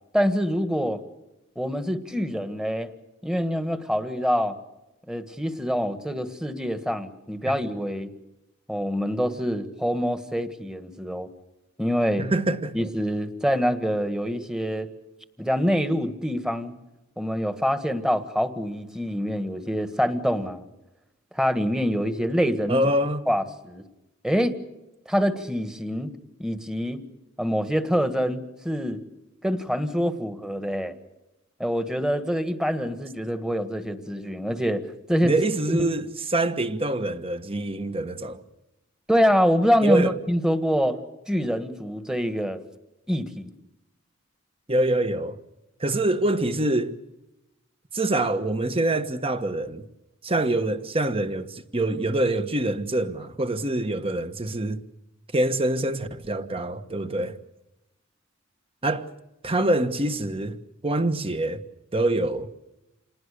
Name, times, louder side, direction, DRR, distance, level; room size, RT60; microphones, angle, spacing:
voice 1, 0.1-1.0 1.5-2.9 3.2-4.6 5.1-8.1 8.7-11.3 11.8-12.3 12.7-14.9 15.4-16.7 17.2-20.7 21.3-22.8 23.3-23.8 24.2-24.6 25.0-26.1 26.4-27.0 27.4-29.0 29.4-30.9 31.6-35.3 35.7-35.9 39.1-41.0 41.3-42.6 43.1-43.5, equal, 5° right, 1.6 m, -25 dB
voice 2, 12.2-12.8 22.7-23.2 35.2-38.4 39.8-40.1 44.7-45.4 45.8-47.0 47.9-49.8 50.2-54.8 55.3-57.4 58.8-59.1 59.4-60.6 60.8-61.6 61.9-62.5, right 1 dB, 25° right, 1.4 m, -25 dB
28.0 x 20.0 x 6.7 m
head